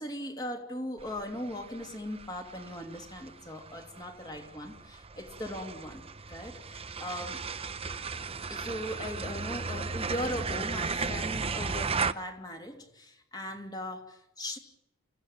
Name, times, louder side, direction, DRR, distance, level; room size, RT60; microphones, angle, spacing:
voice 1, 0.0-7.4 8.5-14.6, left 1 dB, 20° left, 2.8 m, -39 dB
sound 1, 1.0-12.1, right 4 dB, 25° right, 0.8 m, -36 dB
28.5 x 16.0 x 9.2 m
head